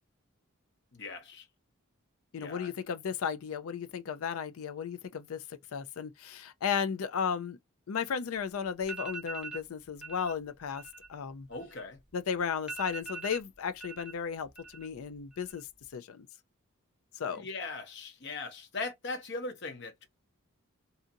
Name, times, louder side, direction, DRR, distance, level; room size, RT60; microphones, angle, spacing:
voice 1, 0.9-1.5 2.4-2.7 11.5-12.0 17.3-20.1, left 3 dB, 50° left, 0.9 m, -39 dB
voice 2, 2.3-7.6 7.9-11.5 12.1-15.7 15.9-16.3 17.2-17.5, left 7 dB, 75° left, 0.4 m, -35 dB
sound 1, 8.4-8.5 8.8-9.6 10.0-10.3 10.6-12.1 12.4-12.5 12.7-14.1 14.4-15.0 15.3-15.8, right 4 dB, 5° right, 0.7 m, -42 dB
2.7 x 2.5 x 2.6 m
head